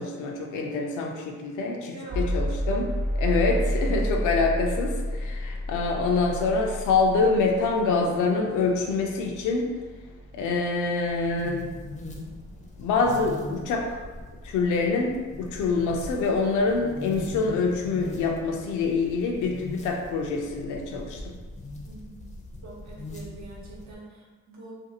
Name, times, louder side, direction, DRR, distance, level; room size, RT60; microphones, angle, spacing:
voice 1, 0.0-9.7 10.3-11.7 12.8-14.0 14.4-21.3, left 4 dB, 80° left, 1 dB, 0.4 m, -26 dB
voice 2, 1.9-2.3 21.8-22.3 22.6-24.7, right 2 dB, 70° right, -4 dB, 0.9 m, -44 dB
sound 1, 2.1-18.0, equal, 25° right, 0.5 m, -33 dB
sound 2, 11.1-23.9, left 1 dB, 25° left, 0.5 m, -41 dB
2.5 x 2.3 x 2.7 m, 1.3 s
cardioid pair, 90°, 30 cm